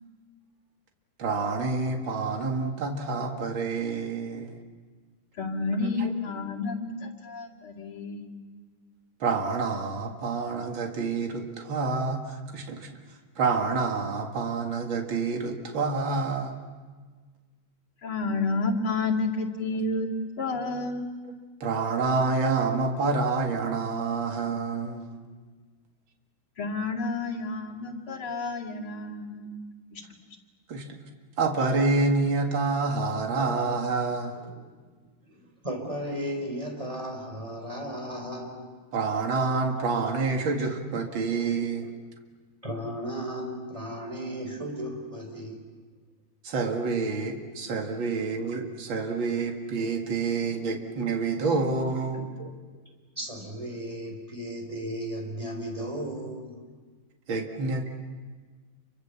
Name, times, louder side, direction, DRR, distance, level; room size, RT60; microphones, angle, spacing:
voice 1, 1.2-4.6 5.9-6.1 9.2-12.9 13.4-16.6 21.3-25.2 30.7-31.0 31.4-34.4 38.9-41.9 46.4-52.3 57.3-57.9, right 4 dB, 70° right, 3 dB, 2.8 m, -28 dB
voice 2, 5.4-8.3 18.0-20.1 20.4-21.0 26.6-29.6 29.9-30.0, left 3 dB, 80° left, -1 dB, 3.4 m, -30 dB
voice 3, 35.2-38.8 42.6-45.6 48.1-48.2 51.5-51.6 52.1-52.5 53.2-56.6, equal, 15° right, 1 dB, 5.3 m, -35 dB
29.0 x 25.0 x 7.1 m, 1.5 s
omnidirectional pair, 2.3 m